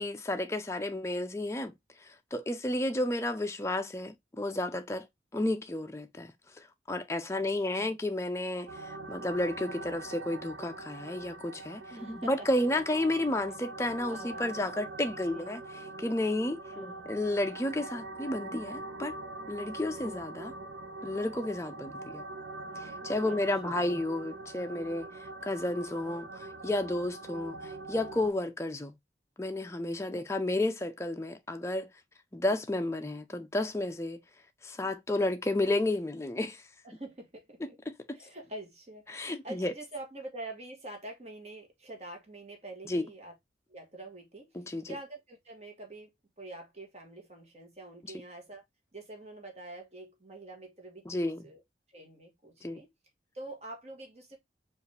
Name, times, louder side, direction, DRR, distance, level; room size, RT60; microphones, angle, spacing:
voice 1, 0.0-1.7 2.0-5.1 5.3-6.3 6.9-15.6 16.0-19.2 19.5-20.5 21.0-22.2 22.8-25.1 25.4-28.9 29.4-31.9 32.3-34.2 34.6-36.6 37.9-38.2 39.1-39.7 42.9-43.0 44.6-45.0 48.0-48.1 51.1-51.4 52.6-52.8, left 1 dB, 15° left, 0.5 m, -32 dB
voice 2, 7.3-7.9 11.9-12.8 14.0-14.5 15.3-15.6 16.7-17.1 23.2-23.9 30.1-30.2 36.8-37.8 38.1-43.4 43.7-44.5 44.9-48.6 48.9-51.6 51.9-52.9 53.3-54.4, right 2 dB, 35° right, 1.2 m, -46 dB
sound 1, 8.7-28.3, right 2 dB, 85° right, 0.6 m, -43 dB
4.8 x 2.5 x 3.2 m
head